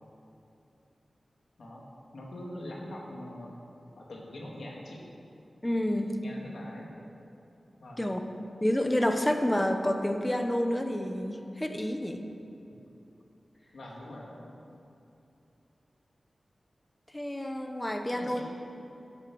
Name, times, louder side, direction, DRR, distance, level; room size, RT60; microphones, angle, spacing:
voice 1, 2.1-3.5 4.0-5.0 6.2-6.9 7.8-8.0 13.7-14.6 18.1-18.4, left 1 dB, 90° left, -3 dB, 2.1 m, -43 dB
voice 2, 5.6-6.2 8.0-8.2 8.6-12.2 17.1-18.4, left 1 dB, 15° left, 5 dB, 0.9 m, -29 dB
11.5 x 7.4 x 6.2 m, 2.8 s
wide cardioid pair, 95°, 0 cm